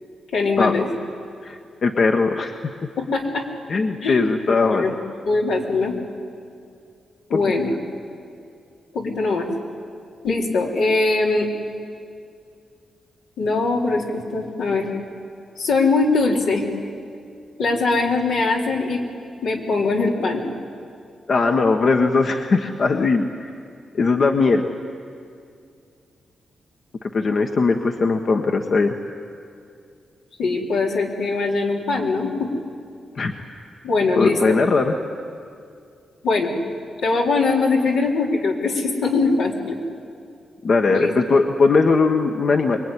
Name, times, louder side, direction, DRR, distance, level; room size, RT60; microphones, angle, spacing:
voice 1, 0.3-0.9 3.0-3.5 4.0-4.2 4.7-4.9 5.3-6.0 7.3-7.7 8.9-9.5 10.2-11.5 13.4-14.9 15.6-16.6 17.6-19.0 19.4-20.4 30.4-32.5 33.8-34.6 36.2-36.5 37.0-39.8 40.9-41.1, left 3 dB, 90° left, -2 dB, 3.7 m, -21 dB
voice 2, 1.4-2.6 3.7-4.9 7.3-7.4 21.3-23.5 23.9-24.7 27.0-28.9 33.1-33.3 34.1-34.9 40.6-42.8, left 4 dB, 60° left, 3 dB, 1.4 m, -19 dB
24.5 x 22.0 x 10.0 m, 2.4 s
cardioid pair, 70°, 0 cm